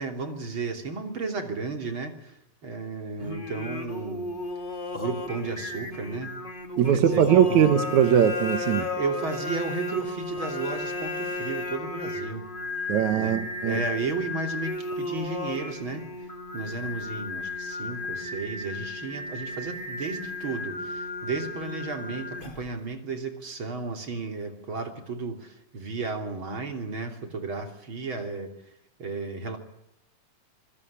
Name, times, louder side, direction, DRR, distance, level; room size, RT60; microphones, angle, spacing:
voice 1, 0.0-4.3 4.9-6.4 6.8-7.7 8.9-12.5 13.1-16.0 16.5-28.5 29.0-29.6, right 4 dB, 35° right, 5 dB, 3.5 m, -33 dB
Singing, 3.2-22.8, left 2 dB, 20° left, 1.8 m, -34 dB
voice 2, 6.8-8.9 12.9-13.8, right 9 dB, 65° right, 9 dB, 2.4 m, -21 dB
26.5 x 21.5 x 8.6 m, 0.82 s
omnidirectional pair, 4.0 m